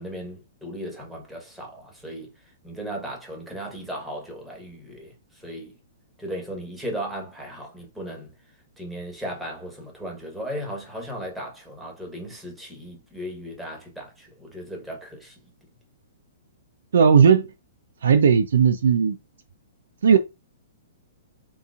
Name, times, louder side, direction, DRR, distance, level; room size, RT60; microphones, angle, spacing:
voice 1, 0.0-2.3 2.6-5.8 6.2-8.3 8.8-15.4, equal, 5° right, 1.3 m, -36 dB
voice 2, 16.9-17.5 18.0-19.2 20.0-20.2, right 6 dB, 70° right, 0.4 m, -16 dB
3.8 x 2.9 x 2.5 m
hypercardioid pair, 120°, 0 cm